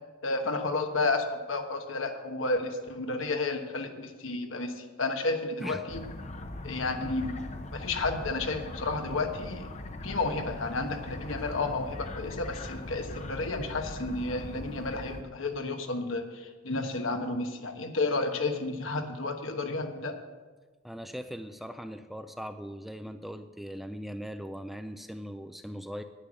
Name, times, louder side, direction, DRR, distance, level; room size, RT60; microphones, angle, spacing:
voice 1, 0.2-6.0 6.6-7.3 7.7-9.7 10.0-20.2, left 3 dB, 80° left, 5 dB, 1.3 m, -31 dB
sound 1, 5.9-15.2, left 2 dB, 35° left, 0.7 m, -40 dB
voice 2, 20.8-26.0, equal, ahead, 8 dB, 0.4 m, -40 dB
10.5 x 10.0 x 6.2 m, 1.3 s
head